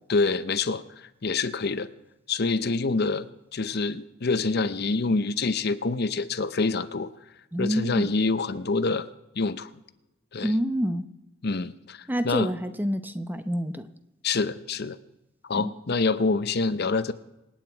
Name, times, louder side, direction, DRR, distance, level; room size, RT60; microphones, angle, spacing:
voice 1, 0.1-1.9 2.3-3.3 3.5-7.1 7.6-9.1 9.4-9.7 10.3-10.5 11.4-12.5 14.2-15.0 15.4-17.1, left 3 dB, 55° left, 13 dB, 0.7 m, -26 dB
voice 2, 7.5-8.1 10.4-11.1 12.1-13.9 15.5-15.7, equal, 10° right, 10 dB, 0.8 m, -27 dB
27.0 x 9.1 x 4.6 m, 0.96 s
head